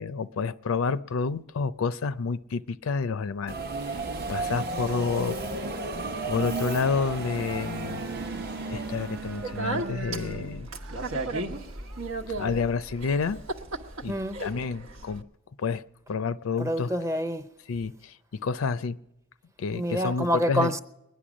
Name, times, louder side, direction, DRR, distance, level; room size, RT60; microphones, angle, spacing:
voice 1, 0.0-3.7 4.3-5.4 6.3-8.1 8.7-10.7 12.3-13.4 14.0-15.2 15.6-15.8 16.1-16.9 17.7-18.1 18.4-19.0 19.6-20.7, left 5 dB, 75° left, 0.5 m, -29 dB
Subway metro underground, 3.5-9.7, right 3 dB, 50° right, 0.8 m, -33 dB
sound 1, 6.9-12.1, right 3 dB, 70° right, 1.0 m, -40 dB
Speech, 9.2-15.2, right 2 dB, 85° right, 1.3 m, -35 dB
voice 2, 14.1-14.4 16.6-17.5 19.7-20.8, equal, 15° right, 0.6 m, -27 dB
21.5 x 10.0 x 6.2 m
head